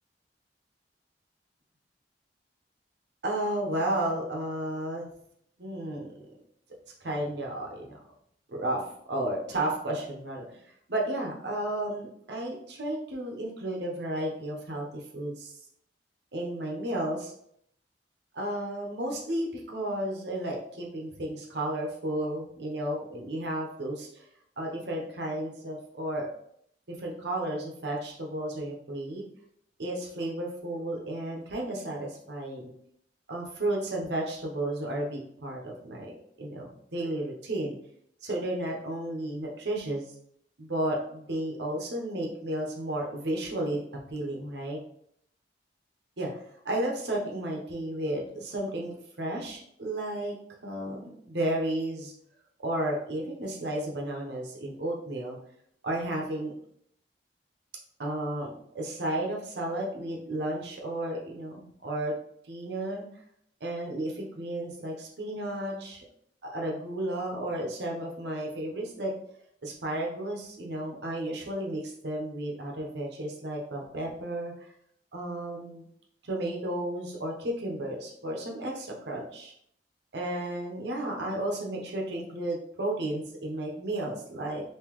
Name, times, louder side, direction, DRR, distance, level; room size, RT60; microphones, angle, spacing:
voice 1, 3.2-5.1 5.6-6.1 7.0-8.0 8.5-10.4 10.9-14.9 15.1-15.5 16.3-17.3 18.3-24.2 24.6-26.3 27.0-29.2 29.8-32.7 33.3-37.8 38.2-40.1 40.6-44.8 46.2-50.3 50.6-52.1 52.6-55.4 55.8-56.5 58.0-62.2 62.4-63.1 63.6-66.0 66.4-69.1 69.6-74.7 75.1-75.9 76.2-79.5 80.1-84.6, right 1 dB, 70° right, -1 dB, 0.9 m, -33 dB
3.7 x 2.9 x 3.0 m, 0.69 s
head